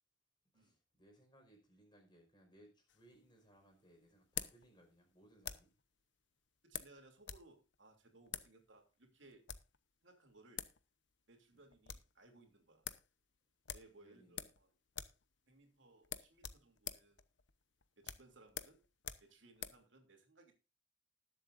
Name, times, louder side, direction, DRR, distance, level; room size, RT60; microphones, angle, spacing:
voice 1, 0.5-5.7 11.5-11.6 13.9-14.5, right 1 dB, 25° left, 2 dB, 5.0 m, -66 dB
sound 1, 2.9-5.8 6.7-7.5 7.7-7.8 8.3-8.5 9.3-9.8 10.3-10.4 10.6-10.8 11.1-11.2 11.5-12.1 12.5-12.6 12.8-13.1 13.7-14.6 14.9-15.2 15.5-15.6 16.0-19.8, left 10 dB, 65° left, 0.9 m, -47 dB
voice 2, 6.6-9.5 10.0-10.7 11.3-12.9 13.7-14.7 15.5-17.2 18.0-18.8 19.2-20.6, right 2 dB, 70° right, 4 dB, 2.9 m, -64 dB
20.0 x 7.6 x 2.6 m, 0.30 s
head